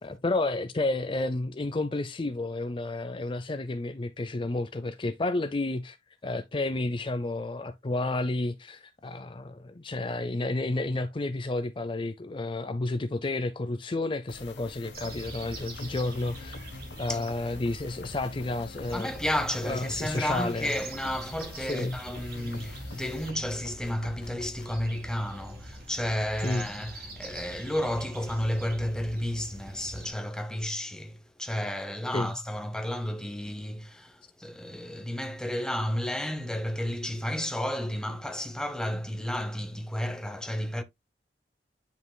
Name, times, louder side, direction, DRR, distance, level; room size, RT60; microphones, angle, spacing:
voice 1, 0.0-6.0 6.2-16.6 17.0-19.1 19.6-20.7 21.6-22.0 26.4-26.7 32.1-32.3, left 2 dB, 30° left, 0.5 m, -31 dB
sound 1, 14.3-24.8, left 3 dB, 85° left, 1.1 m, -46 dB
sound 2, 14.9-30.1, right 1 dB, 55° right, 3.1 m, -44 dB
voice 2, 18.9-40.8, left 1 dB, 5° left, 0.9 m, -32 dB
9.6 x 5.7 x 2.2 m
head